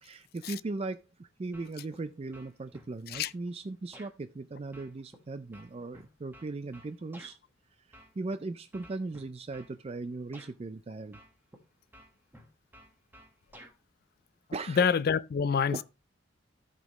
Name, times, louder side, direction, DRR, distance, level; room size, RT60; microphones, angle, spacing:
voice 1, 0.0-7.4 7.8-11.2 14.5-14.9 15.7-15.8, right 3 dB, 30° right, 0.4 m, -38 dB
sound 1, 1.5-2.0 2.3-3.3 3.9-4.1 4.7-7.4 7.9-8.4 8.7-9.7 10.3-10.5 11.1-11.6 11.9-13.8, equal, 10° right, 1.4 m, -53 dB
voice 2, 14.7-15.8, left 6 dB, 50° left, 0.4 m, -26 dB
14.5 x 5.1 x 3.0 m
head